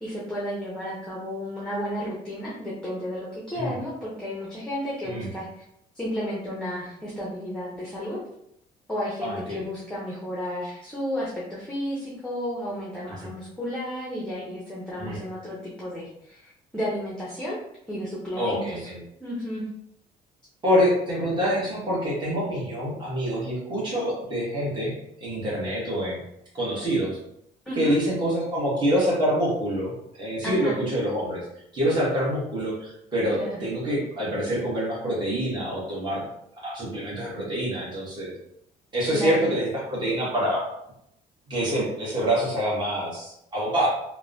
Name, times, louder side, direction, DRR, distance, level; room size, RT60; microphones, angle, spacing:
voice 1, 0.0-5.6 5.9-8.2 8.9-17.6 17.9-18.9 19.2-19.7 27.7-28.0 30.4-30.8 33.3-33.6 39.1-39.5, equal, 5° left, -6 dB, 0.7 m, -32 dB
voice 2, 9.2-9.7 13.2-13.3 15.0-15.2 18.4-19.0 20.6-25.0 25.2-26.2 26.5-27.2 27.8-31.4 31.7-36.2 36.6-38.3 38.9-40.6 41.5-43.9, equal, 25° right, -7 dB, 1.3 m, -26 dB
2.9 x 2.1 x 2.5 m, 0.77 s
cardioid pair, 110°, 17 cm